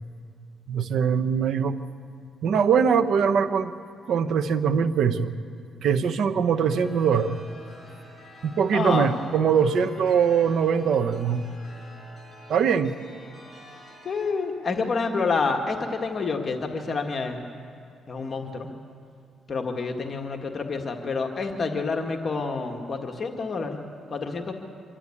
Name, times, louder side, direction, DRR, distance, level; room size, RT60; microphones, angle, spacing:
voice 1, 0.7-1.7 2.4-3.7 4.1-5.3 5.8-7.4 8.4-11.5 12.5-12.9, right 7 dB, 70° right, 11 dB, 1.0 m, -22 dB
Chime, 6.7-14.3, equal, 15° left, 6.7 m, -48 dB
voice 2, 8.7-9.1 14.1-17.4 18.1-18.7 19.5-23.8 24.1-24.5, left 4 dB, 40° left, 3 dB, 1.7 m, -28 dB
25.0 x 12.5 x 8.6 m, 2.3 s
cardioid pair, 90°, 0 cm